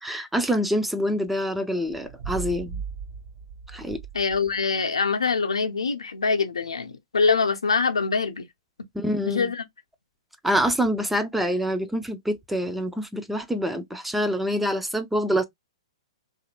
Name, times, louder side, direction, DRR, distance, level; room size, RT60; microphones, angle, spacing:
voice 1, 0.0-2.8 3.7-4.0 8.9-9.5 10.4-15.4, equal, 5° right, 0.4 m, -26 dB
sound 1, 1.8-4.6, right 6 dB, 50° right, 0.6 m, -37 dB
voice 2, 4.1-8.4 9.2-9.6, left 4 dB, 70° left, 0.6 m, -24 dB
2.8 x 2.4 x 2.8 m
figure-of-eight pair, 110°, 3 cm